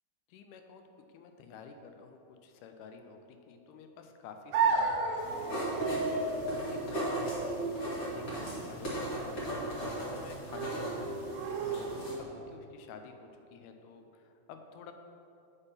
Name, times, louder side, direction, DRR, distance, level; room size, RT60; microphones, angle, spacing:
voice 1, 0.3-0.8 1.1-3.2 3.5-9.5 9.8-11.1 11.7-11.9 12.5-14.9, left 5 dB, 80° left, 6 dB, 2.0 m, -50 dB
sound 1, 4.5-12.5, right 4 dB, 85° right, 1.6 m, -35 dB
sound 2, 5.2-12.1, right 1 dB, 45° left, 1.1 m, -37 dB
8.1 x 3.5 x 5.5 m, 2.8 s
omnidirectional pair, 3.7 m